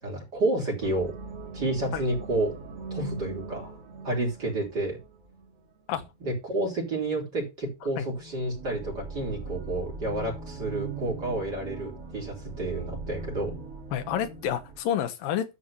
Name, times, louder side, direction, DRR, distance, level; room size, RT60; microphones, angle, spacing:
voice 1, 0.0-1.1 1.5-2.5 2.9-3.7 4.0-5.0 6.2-13.5, right 2 dB, 25° right, 3.8 m, -30 dB
sound 1, 0.8-5.7 7.7-14.8, right 3 dB, 45° right, 3.1 m, -40 dB
voice 2, 13.9-15.6, left 10 dB, 75° left, 2.8 m, -29 dB
12.5 x 4.7 x 5.4 m
omnidirectional pair, 4.3 m